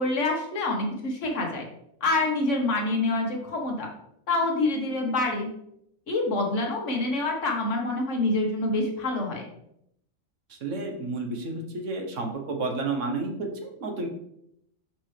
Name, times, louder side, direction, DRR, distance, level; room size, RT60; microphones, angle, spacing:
voice 1, 0.0-1.7 2.0-3.9 4.3-5.5 6.1-9.5, left 2 dB, 65° left, 1 dB, 1.5 m, -26 dB
voice 2, 10.5-14.1, right 3 dB, 70° right, 3 dB, 1.4 m, -31 dB
5.8 x 5.3 x 3.3 m, 0.75 s
omnidirectional pair, 1.4 m